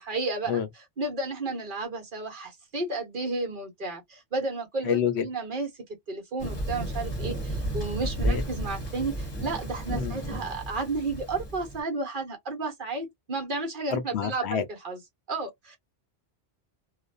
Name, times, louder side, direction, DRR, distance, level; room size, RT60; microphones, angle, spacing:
voice 1, 0.0-5.7 6.1-15.0 15.3-15.8, right 3 dB, 50° right, 1.0 m, -32 dB
voice 2, 4.9-5.2 8.2-8.4 10.0-10.2 13.9-14.6, left 8 dB, 70° left, 0.8 m, -27 dB
Thunder, 6.4-11.8, right 1 dB, 25° left, 0.8 m, -32 dB
2.5 x 2.1 x 2.5 m
omnidirectional pair, 1.2 m